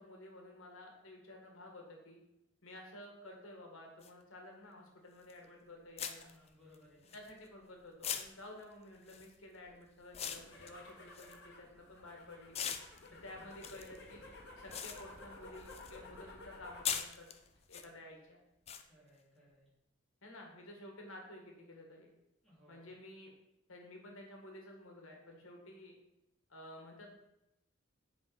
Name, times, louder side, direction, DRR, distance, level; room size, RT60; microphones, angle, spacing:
voice 1, 0.0-2.2 2.6-6.3 7.1-12.6 13.2-14.2 14.6-17.3 17.7-18.4 20.2-22.1 22.7-23.3 23.7-26.0 26.5-27.1, left 1 dB, 80° left, 1 dB, 1.8 m, -52 dB
sound 1, 4.0-4.1 5.3-5.4 6.0-7.6 8.0-12.1 12.5-16.0 16.3-17.9 18.7-18.8, left 8 dB, 30° left, 0.5 m, -42 dB
voice 2, 6.2-7.2 13.0-13.7 18.9-19.6 22.4-22.9, left 1 dB, ahead, -9 dB, 3.1 m, -63 dB
sound 2, 10.2-17.0 17.3-17.9, left 2 dB, 55° left, 1.7 m, -54 dB
7.5 x 5.2 x 5.0 m, 0.89 s
head